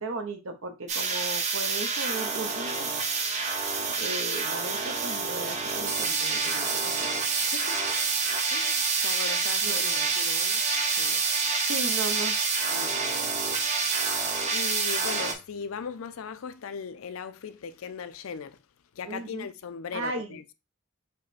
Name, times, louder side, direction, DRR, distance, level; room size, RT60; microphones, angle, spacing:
voice 1, 0.0-2.9 4.0-6.7 7.0-7.1 9.6-10.1 11.7-12.4 19.0-19.5 19.9-20.4, right 2 dB, 70° right, 0.9 m, -36 dB
sound 1, 0.9-15.3, right 4 dB, 35° right, 0.7 m, -27 dB
voice 2, 7.4-8.1 8.5-11.2 12.7-13.4 13.9-18.6 19.0-20.5, left 6 dB, 75° left, 0.5 m, -39 dB
5.2 x 2.2 x 4.1 m
head